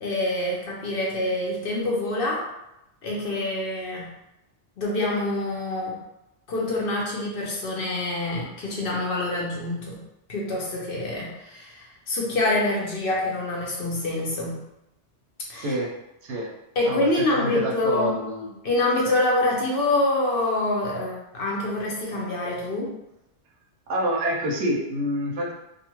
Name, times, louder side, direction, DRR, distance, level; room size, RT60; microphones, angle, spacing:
voice 1, 0.0-2.4 3.0-4.1 4.8-6.0 6.5-10.0 10.3-14.6 15.5-15.7 16.8-18.2 18.6-22.9, left 2 dB, 55° left, -3 dB, 0.7 m, -26 dB
voice 2, 15.6-15.9 16.2-16.5 16.9-18.5 23.9-25.5, right 1 dB, 80° right, -1 dB, 0.9 m, -27 dB
2.6 x 2.4 x 2.9 m, 0.88 s
omnidirectional pair, 1.2 m